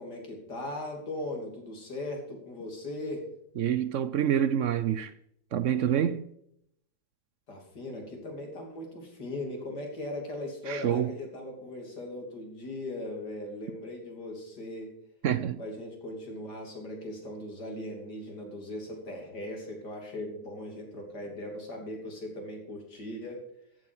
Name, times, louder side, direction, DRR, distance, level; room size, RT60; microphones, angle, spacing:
voice 1, 0.0-3.2 7.5-14.9 15.6-23.4, left 1 dB, 85° left, 3.6 m, -39 dB
voice 2, 3.6-5.1 5.5-6.2 10.7-11.1 15.2-15.6, right 9 dB, 65° right, 0.8 m, -27 dB
13.5 x 7.7 x 6.1 m
omnidirectional pair, 1.8 m